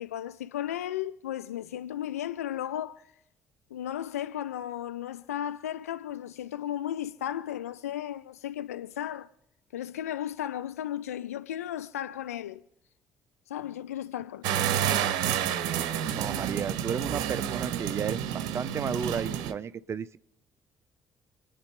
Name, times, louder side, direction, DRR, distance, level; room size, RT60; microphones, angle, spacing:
voice 1, 0.0-3.0 3.7-9.3 9.7-12.6 13.5-14.5, left 11 dB, 75° left, 0.4 m, -35 dB
sound 1, 14.4-19.5, right 10 dB, 60° right, 0.9 m, -29 dB
voice 2, 16.1-20.2, right 7 dB, 35° right, 0.5 m, -33 dB
28.0 x 9.4 x 3.5 m
figure-of-eight pair, 50°, 8 cm